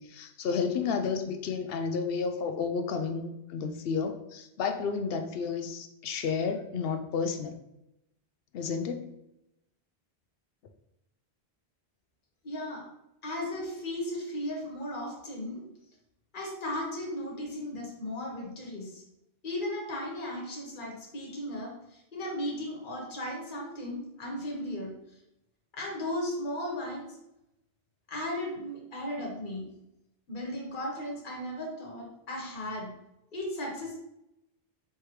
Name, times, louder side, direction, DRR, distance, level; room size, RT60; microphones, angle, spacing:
voice 1, 0.0-7.5 8.5-9.1, left 5 dB, 65° left, 6 dB, 0.7 m, -31 dB
voice 2, 12.4-12.9 13.2-15.6 16.3-19.0 19.4-24.9 25.7-27.2 28.1-29.7 30.3-32.9 33.3-33.9, left 1 dB, 50° left, -1 dB, 1.3 m, -36 dB
4.7 x 3.3 x 3.1 m, 0.85 s
omnidirectional pair, 1.1 m